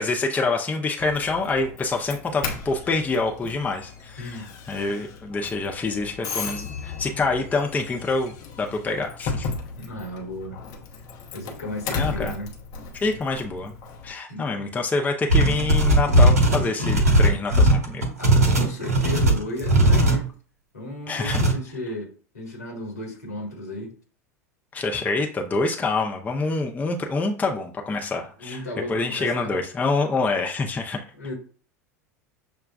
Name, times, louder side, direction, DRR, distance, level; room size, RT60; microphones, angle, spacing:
voice 1, 0.0-9.5 11.9-12.3 13.0-13.7 14.0-18.0 21.1-21.4 24.7-28.6 28.9-31.0, left 3 dB, 20° left, 0.7 m, -26 dB
Doorbell, 1.0-14.1, left 5 dB, 45° left, 0.8 m, -35 dB
voice 2, 4.2-4.5 9.8-10.6 11.3-12.5 14.3-14.6 18.2-20.3 20.7-23.9 28.4-29.5 31.2-31.3, left 1 dB, 85° left, 1.6 m, -34 dB
sound 1, 15.3-20.2 21.2-21.5, right 1 dB, 80° right, 1.0 m, -18 dB
6.6 x 2.3 x 2.4 m
figure-of-eight pair, 80°, 8 cm